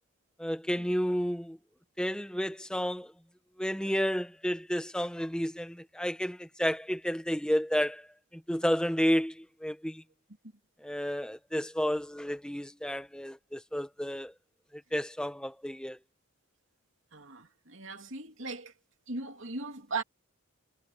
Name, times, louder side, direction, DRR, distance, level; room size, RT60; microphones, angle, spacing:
voice 1, 0.4-1.6 2.0-3.1 3.6-8.1 8.3-10.0 10.8-14.3 14.7-16.0, equal, 5° left, 1.3 m, -31 dB
voice 2, 17.1-18.7 19.1-20.0, right 3 dB, 60° right, 2.9 m, -38 dB
head